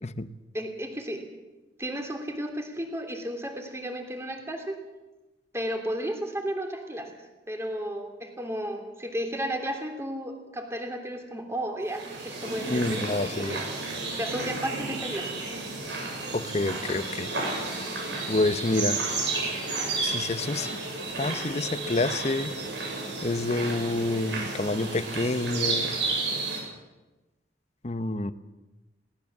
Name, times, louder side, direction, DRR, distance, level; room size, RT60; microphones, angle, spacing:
voice 1, 0.5-1.2 1.8-4.8 5.5-7.1 7.5-13.1 13.4-13.6 14.1-15.3, equal, 15° right, 3.0 m, -33 dB
sound 1, 11.9-26.6, right 3 dB, 80° right, 7.6 m, -32 dB
voice 2, 12.7-13.6 16.3-17.4 18.3-19.0 20.0-20.8 21.2-22.5 23.2-25.9 27.8-28.3, left 2 dB, 40° left, 0.8 m, -28 dB
21.5 x 18.0 x 7.3 m
head